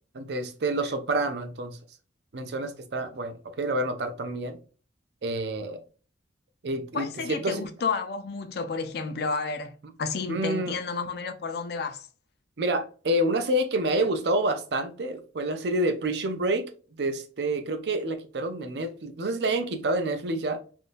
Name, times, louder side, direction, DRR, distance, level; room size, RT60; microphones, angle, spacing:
voice 1, 0.1-1.8 2.3-4.6 5.2-5.8 6.6-7.6 10.3-10.7 12.6-16.7 17.0-20.6, right 1 dB, 70° right, 0.5 m, -28 dB
voice 2, 6.9-12.1, left 4 dB, 65° left, 0.5 m, -31 dB
3.6 x 2.5 x 2.5 m
head